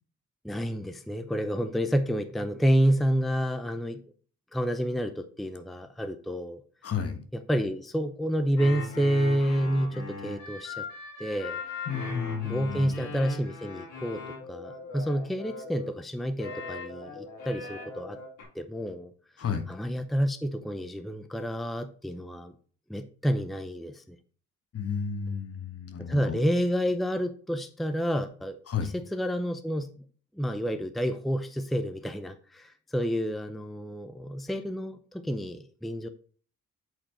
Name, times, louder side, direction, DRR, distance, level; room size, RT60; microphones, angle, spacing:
voice 1, 0.4-4.0 4.5-6.6 7.3-10.9 11.2-11.6 12.4-18.2 18.5-19.1 19.4-22.5 22.9-24.2 26.0-29.9 30.4-36.1, equal, ahead, 9 dB, 0.6 m, -29 dB
voice 2, 6.8-7.2 11.9-12.9 19.4-19.6 24.7-26.5 28.7-28.9, left 7 dB, 50° left, 9 dB, 1.3 m, -32 dB
sound 1, 8.6-15.9 16.4-18.4, left 3 dB, 85° left, 4.0 m, -39 dB
7.9 x 4.3 x 4.4 m, 0.43 s
cardioid pair, 90°, 30 cm